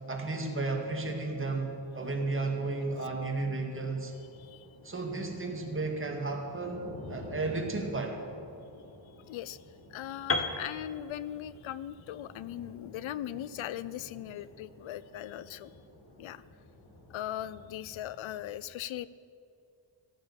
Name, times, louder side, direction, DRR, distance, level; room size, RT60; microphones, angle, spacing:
voice 1, 0.0-4.1 4.8-8.2, right 3 dB, 25° right, 2 dB, 2.0 m, -33 dB
sound 1, 0.8-18.5, left 1 dB, 65° left, 4.3 m, -51 dB
voice 2, 9.3-9.6 9.9-15.7 16.2-16.4 17.1-19.1, left 12 dB, 80° left, 17 dB, 0.5 m, -39 dB
Piano, 10.3-14.2, left 3 dB, 30° left, 1.0 m, -36 dB
15.0 x 8.9 x 7.2 m, 2.4 s
wide cardioid pair, 110°, 46 cm